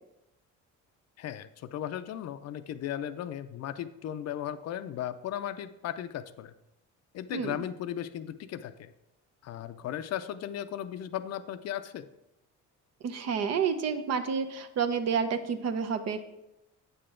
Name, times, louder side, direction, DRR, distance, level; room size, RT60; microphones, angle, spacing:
voice 1, 1.2-6.5 7.1-8.9 9.4-12.1, left 10 dB, 55° left, 12 dB, 0.5 m, -36 dB
voice 2, 13.0-16.2, right 6 dB, 55° right, 8 dB, 0.7 m, -29 dB
8.5 x 6.7 x 3.7 m, 0.90 s
cardioid pair, 140°, 32 cm